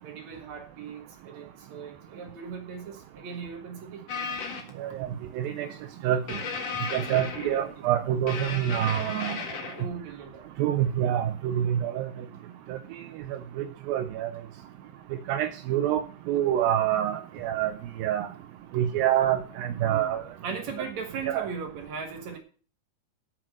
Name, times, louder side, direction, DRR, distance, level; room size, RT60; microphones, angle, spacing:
voice 1, 0.0-4.0 5.6-5.8 6.9-7.7 9.8-10.5 19.8-20.2 20.4-22.4, right 5 dB, 55° right, 4 dB, 2.5 m, -39 dB
sound 1, 4.1-4.7 6.3-7.8 8.3-9.8, left 5 dB, 50° left, 2.4 m, -35 dB
voice 2, 4.8-5.1 5.3-5.7 6.0-6.4 6.9-9.4 10.6-12.1 12.7-13.0 13.3-14.3 15.1-16.0 16.3-17.7 18.0-18.3 18.7-20.2 20.8-20.9 21.3-21.5, right 11 dB, 80° right, 6 dB, 2.3 m, -27 dB
9.2 x 7.6 x 7.4 m, 0.41 s
omnidirectional pair, 4.6 m